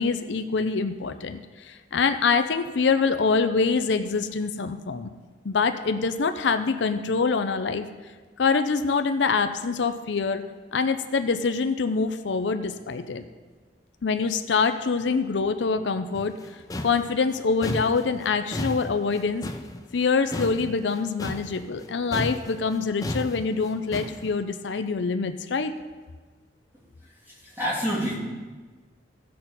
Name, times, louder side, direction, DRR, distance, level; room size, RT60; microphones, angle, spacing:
voice 1, 0.0-5.1 5.4-7.9 8.4-10.4 10.7-13.2 14.0-16.4 16.8-19.5 19.9-25.7, left 4 dB, 75° left, 8 dB, 0.5 m, -25 dB
sound 1, 16.1-21.9 22.1-24.3, left 1 dB, 20° left, 0.5 m, -34 dB
voice 2, 27.3-28.1, equal, 15° right, -7 dB, 3.0 m, -28 dB
16.0 x 6.6 x 4.1 m, 1.4 s
head